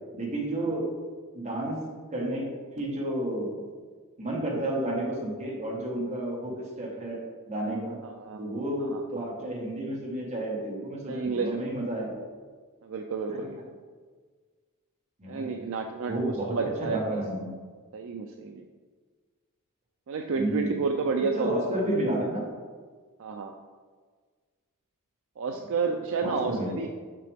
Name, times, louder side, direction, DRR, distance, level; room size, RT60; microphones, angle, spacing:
voice 1, 0.2-1.0 1.3-1.8 2.1-2.5 2.7-3.6 4.2-8.0 8.4-12.1 13.3-13.4 15.2-15.5 16.0-17.6 20.3-20.8 21.3-22.4 26.2-26.7, right 1 dB, 30° right, -3 dB, 1.6 m, -31 dB
voice 2, 8.0-8.4 8.8-9.0 11.1-11.6 12.8-13.6 15.3-17.2 17.9-18.6 20.1-21.5 23.2-23.5 25.4-26.9, right 4 dB, 60° right, 4 dB, 0.4 m, -31 dB
6.7 x 5.8 x 3.5 m, 1.5 s
head